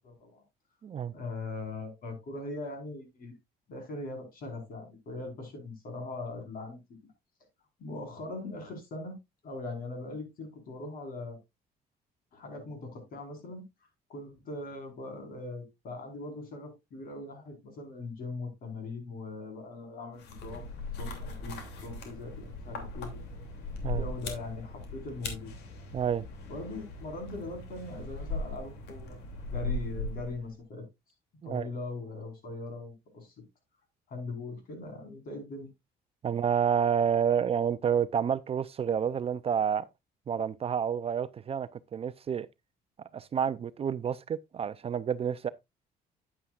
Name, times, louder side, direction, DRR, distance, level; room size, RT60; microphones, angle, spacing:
voice 1, 0.0-0.4 1.1-3.3 3.7-6.8 7.8-9.2 9.4-11.4 12.3-13.6 14.1-23.2 23.9-25.5 26.5-29.2 29.5-30.9 31.4-33.3 34.1-35.7, left 3 dB, 60° left, 4.7 m, -40 dB
voice 2, 0.8-1.1 23.8-24.0 25.9-26.3 31.4-31.7 36.2-39.9 40.3-42.5 43.1-45.5, right 8 dB, 35° right, 0.5 m, -29 dB
sound 1, 20.2-30.6, left 2 dB, 80° left, 2.8 m, -39 dB
9.8 x 9.3 x 2.4 m
cardioid pair, 110°, 17 cm